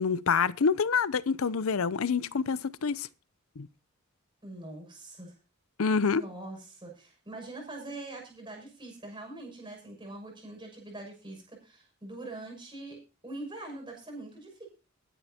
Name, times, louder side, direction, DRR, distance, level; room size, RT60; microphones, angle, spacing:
voice 1, 0.0-3.1 3.6-3.7 5.8-6.2, left 5 dB, 75° left, 0.6 m, -27 dB
voice 2, 4.4-5.3 6.0-14.7, right 2 dB, 20° right, 6.4 m, -43 dB
21.0 x 10.5 x 2.8 m
head